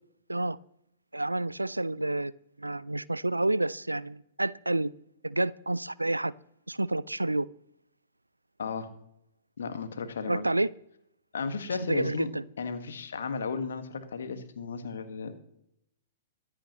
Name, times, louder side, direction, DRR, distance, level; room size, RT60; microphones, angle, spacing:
voice 1, 1.1-2.3 2.6-4.9 5.2-6.3 6.7-7.5 10.3-10.7 11.9-12.4, right 2 dB, 85° right, 20 dB, 0.3 m, -29 dB
voice 2, 9.6-10.4 11.3-12.3 12.6-15.4, left 5 dB, 65° left, 8 dB, 1.6 m, -34 dB
23.0 x 8.7 x 3.1 m, 0.79 s
figure-of-eight pair, 110°, 0 cm